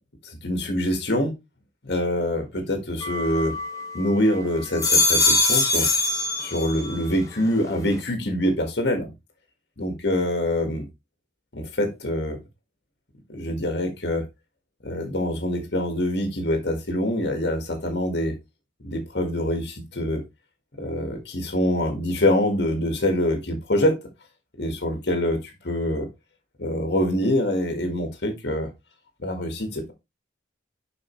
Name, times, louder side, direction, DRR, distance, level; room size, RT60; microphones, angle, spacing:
voice 1, 0.2-1.3 1.8-3.5 3.9-5.9 6.4-9.1 9.8-10.9 11.5-12.4 13.3-14.2 14.8-18.3 18.8-20.2 20.8-23.9 24.6-25.4 25.6-26.1 26.6-28.7 29.2-29.9, left 1 dB, 70° left, 1.8 m, -25 dB
sound 1, 3.0-4.1 4.6-7.0 7.4-8.0, left 2 dB, 20° left, 1.3 m, -23 dB
6.9 x 5.5 x 3.1 m
head